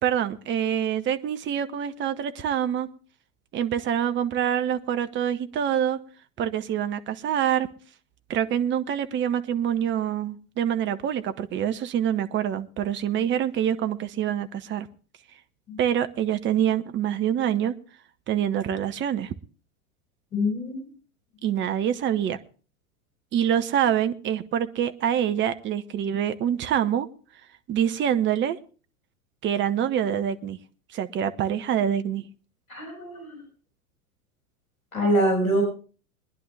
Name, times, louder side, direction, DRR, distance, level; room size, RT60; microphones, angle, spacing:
voice 1, 0.0-2.9 3.5-6.0 6.4-7.7 8.3-14.9 15.8-17.7 18.3-19.3 21.4-22.4 23.3-27.1 27.7-28.6 29.4-30.6 30.9-32.2, right 9 dB, 25° right, 10 dB, 1.0 m, -25 dB
voice 2, 20.3-20.8 32.7-33.4 34.9-35.6, equal, 70° left, 1 dB, 6.1 m, -24 dB
23.0 x 10.5 x 3.4 m, 0.38 s
figure-of-eight pair, 85°, 44 cm